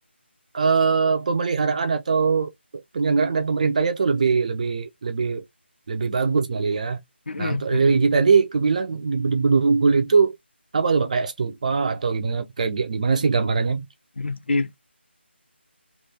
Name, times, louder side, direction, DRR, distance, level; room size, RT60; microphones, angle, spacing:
voice 1, 0.5-2.5 2.9-5.4 5.9-7.0 7.4-10.3 10.7-13.9, right 5 dB, 35° right, 0.7 m, -21 dB
voice 2, 7.3-8.0 14.2-14.8, left 3 dB, 65° left, 0.6 m, -27 dB
3.3 x 2.6 x 4.2 m
figure-of-eight pair, 160°, 6 cm